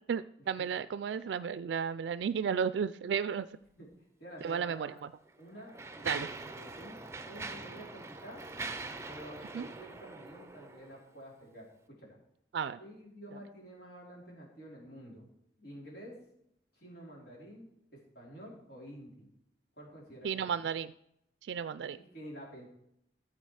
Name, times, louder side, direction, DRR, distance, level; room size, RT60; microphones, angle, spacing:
voice 1, 0.1-3.5 4.4-5.1 6.1-6.3 9.5-9.7 12.5-12.8 20.2-20.9 21.4-22.0, right 7 dB, 75° right, 14 dB, 0.3 m, -33 dB
voice 2, 4.2-5.0 5.4-7.0 7.2-8.4 9.1-12.2 12.8-15.2 15.6-16.1 16.7-19.3 19.8-20.5 21.9-22.7, equal, 60° left, -4 dB, 4.0 m, -49 dB
Mechanisms, 4.4-4.5 5.3-11.0, right 3 dB, 15° right, 0.6 m, -43 dB
14.0 x 7.6 x 4.8 m, 0.78 s
head